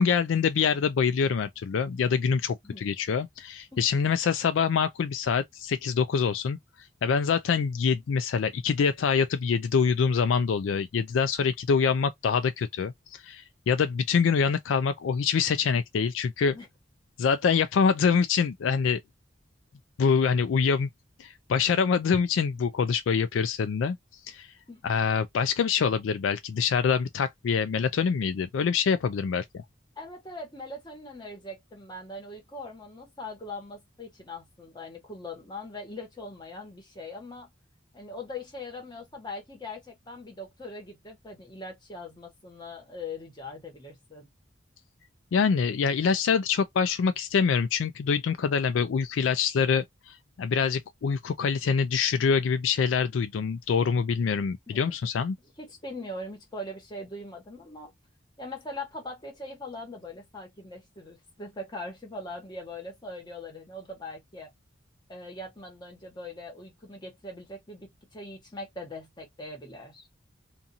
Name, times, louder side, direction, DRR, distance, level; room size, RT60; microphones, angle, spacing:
voice 1, 0.0-6.6 7.0-16.6 17.2-19.0 20.0-20.9 21.2-24.0 24.3-24.5 24.8-29.6 45.3-55.4, left 6 dB, 75° left, 0.4 m, -25 dB
voice 2, 2.6-2.9 3.7-3.9 16.5-16.7 24.7-24.8 30.0-37.5 37.9-44.3 54.7-55.0 55.6-57.9 58.4-64.5 65.1-70.1, left 2 dB, 25° left, 1.3 m, -41 dB
2.6 x 2.4 x 2.7 m
head